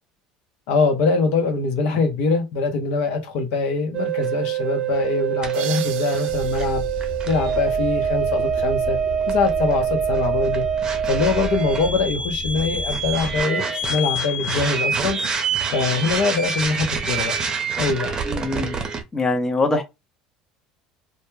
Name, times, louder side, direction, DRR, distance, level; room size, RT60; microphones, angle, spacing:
voice 1, 0.7-6.8 7.3-9.0 9.3-10.6 11.1-15.2 15.7-17.4 17.8-18.1, left 4 dB, 70° left, 0.7 m, -23 dB
sound 1, 3.9-19.0, right 6 dB, 30° right, 0.6 m, -25 dB
sound 2, 5.5-8.3, right 10 dB, 65° right, 0.4 m, -38 dB
sound 3, 6.3-13.4, left 3 dB, 45° left, 1.0 m, -33 dB
voice 2, 18.3-18.8 19.1-19.8, left 2 dB, 20° left, 0.6 m, -23 dB
2.1 x 2.1 x 3.1 m
supercardioid pair, 90°, 2 cm